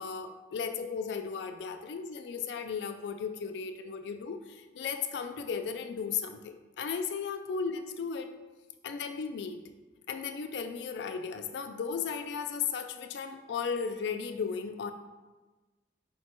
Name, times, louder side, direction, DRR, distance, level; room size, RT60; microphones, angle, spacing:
voice 1, 0.0-8.3 8.8-9.6 10.1-14.9, left 6 dB, 75° left, 7 dB, 0.3 m, -35 dB
4.4 x 2.1 x 4.3 m, 1.2 s
head